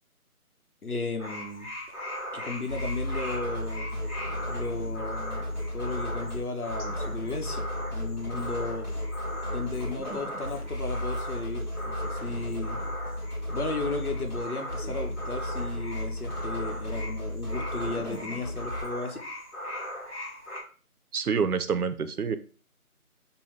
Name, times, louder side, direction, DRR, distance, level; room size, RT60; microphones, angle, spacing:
voice 1, 0.8-1.7 2.3-4.0 4.5-8.9 9.5-12.8 13.5-19.2, left 3 dB, 75° left, 5 dB, 1.0 m, -35 dB
sound 1, 1.2-20.6, equal, 50° left, 1.7 m, -39 dB
sound 2, 2.7-18.8, left 1 dB, 30° left, 1.4 m, -34 dB
voice 2, 21.1-22.4, right 6 dB, 75° right, 11 dB, 0.6 m, -27 dB
5.4 x 2.2 x 3.2 m, 0.39 s
figure-of-eight pair, 175°, 44 cm